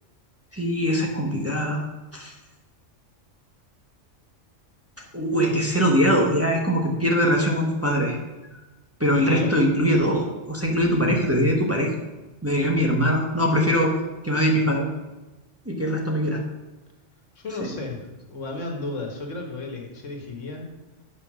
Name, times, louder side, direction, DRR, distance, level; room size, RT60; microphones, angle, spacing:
voice 1, 0.5-1.8 2.1-2.3 5.1-8.2 9.0-11.9 12.4-13.9 14.2-14.9 15.7-16.4 17.6-17.7, equal, 15° right, 0 dB, 1.0 m, -22 dB
voice 2, 17.4-20.7, left 2 dB, 80° left, 2 dB, 1.8 m, -34 dB
8.0 x 5.5 x 6.1 m, 1.1 s
omnidirectional pair, 1.3 m